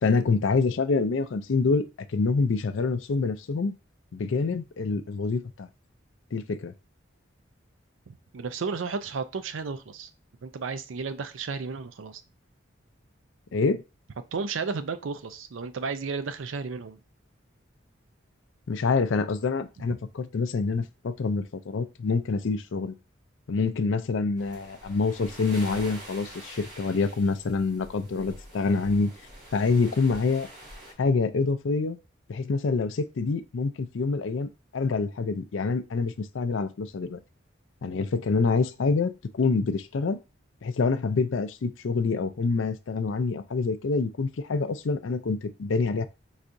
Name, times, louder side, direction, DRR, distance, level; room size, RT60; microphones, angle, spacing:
voice 1, 0.0-1.8 2.1-3.7 4.1-5.7 6.3-6.7 13.5-13.8 18.7-22.9 23.5-29.1 29.5-30.5 31.0-32.0 32.3-37.2 37.8-40.2 40.6-46.1, left 4 dB, 80° left, 0.5 m, -26 dB
voice 2, 8.1-10.1 10.4-12.2 14.3-17.0, right 4 dB, 80° right, 0.5 m, -33 dB
sound 1, 24.4-30.9, right 1 dB, 55° right, 2.6 m, -45 dB
4.6 x 4.0 x 2.6 m
head